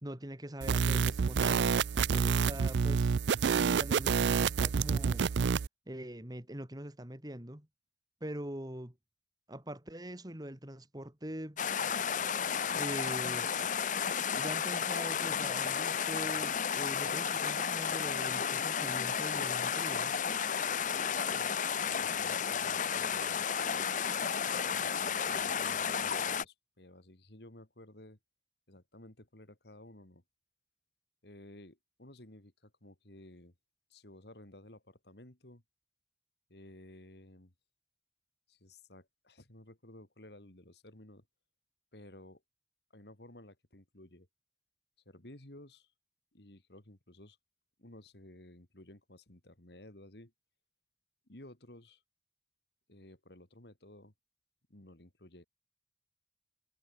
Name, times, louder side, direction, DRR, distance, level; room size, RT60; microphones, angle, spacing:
voice 1, 0.0-3.2 3.5-5.5 5.9-7.7 8.2-8.9 9.5-11.6 12.8-13.5 14.3-20.1, right 1 dB, 20° right, 2.4 m, -43 dB
sound 1, 0.6-5.7, right 6 dB, 80° right, 0.4 m, -28 dB
voice 2, 2.2-2.6 21.3-21.5 22.0-23.4 24.4-28.2 28.7-30.2 31.2-33.5 33.9-35.6 36.5-37.5 38.5-41.2 41.9-42.4 42.9-44.3 45.0-45.9 46.3-47.4 47.8-50.3 51.3-52.0 52.9-54.1 54.7-55.4, left 1 dB, 65° left, 3.3 m, -54 dB
sound 2, 11.6-26.4, left 7 dB, 45° left, 0.7 m, -32 dB
head